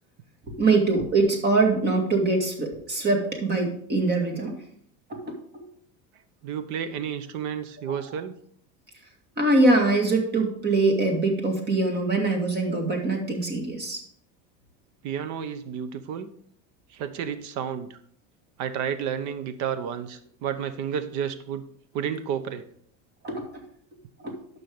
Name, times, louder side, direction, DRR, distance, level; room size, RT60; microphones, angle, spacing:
voice 1, 0.6-4.6 5.1-5.6 7.9-8.0 9.4-14.0 23.2-23.4 24.2-24.3, right 2 dB, 30° right, 2 dB, 2.2 m, -23 dB
voice 2, 6.4-8.3 15.0-16.3 16.9-18.0 18.6-21.6 21.9-22.6, right 8 dB, 60° right, 12 dB, 1.0 m, -31 dB
12.0 x 5.6 x 3.6 m, 0.63 s
supercardioid pair, 125°, 33 cm